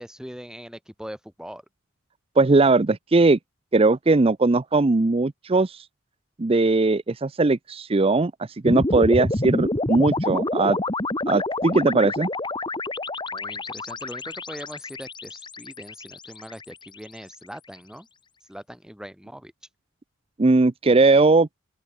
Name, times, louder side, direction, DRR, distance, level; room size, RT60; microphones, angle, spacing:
voice 1, 0.0-1.7 13.3-18.1 18.4-19.5, equal, 5° right, 3.8 m, -41 dB
voice 2, 2.4-3.4 3.7-5.9 6.4-10.8 11.3-12.3 20.4-21.5, right 3 dB, 25° right, 0.5 m, -19 dB
sound 1, 8.7-17.0, left 2 dB, 20° left, 2.2 m, -28 dB
open air
head